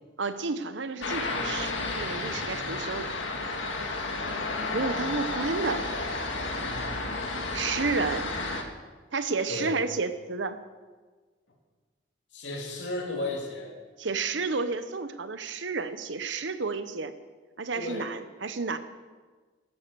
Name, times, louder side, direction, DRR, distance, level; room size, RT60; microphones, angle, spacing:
voice 1, 0.2-3.1 4.7-5.9 7.5-8.3 9.1-10.6 14.0-17.1 17.6-18.8, right 4 dB, 70° right, 11 dB, 0.9 m, -31 dB
sound 1, 1.0-8.6, left 2 dB, 85° left, 1.7 m, -32 dB
voice 2, 6.6-7.0 7.3-7.4 9.5-9.7 12.3-13.8 17.7-18.1, left 2 dB, 65° left, 0 dB, 3.2 m, -34 dB
12.5 x 11.5 x 6.9 m, 1.4 s
head